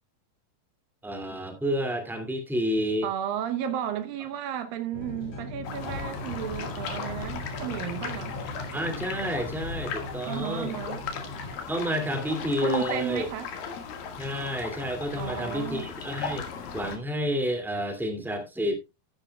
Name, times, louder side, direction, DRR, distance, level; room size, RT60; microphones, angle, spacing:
voice 1, 1.0-3.1 8.7-10.8 11.7-13.2 14.2-16.4 16.7-18.8, equal, ahead, 1.3 m, -30 dB
voice 2, 3.0-8.4 10.3-11.0 12.6-13.5 15.2-15.9, right 9 dB, 80° right, 2.7 m, -33 dB
sound 1, 4.9-11.5, left 1 dB, 55° left, 4.4 m, -39 dB
sound 2, 5.6-17.0, left 6 dB, 75° left, 3.5 m, -37 dB
13.0 x 11.5 x 2.3 m
omnidirectional pair, 4.1 m